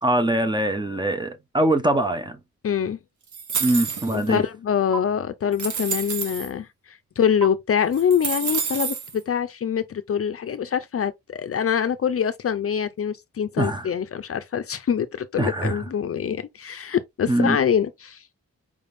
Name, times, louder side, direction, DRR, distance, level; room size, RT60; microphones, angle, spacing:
voice 1, 0.0-2.4 3.6-4.4 13.6-13.9 15.4-15.8 17.3-17.6, right 1 dB, 15° right, 0.6 m, -23 dB
voice 2, 2.6-3.0 4.1-18.2, left 8 dB, 50° left, 0.5 m, -25 dB
sound 1, 3.3-4.3 4.9-5.0 5.5-6.5 7.4-7.5 7.9-9.1, right 6 dB, 75° right, 1.0 m, -28 dB
4.7 x 3.4 x 2.6 m
wide cardioid pair, 175°, 30 cm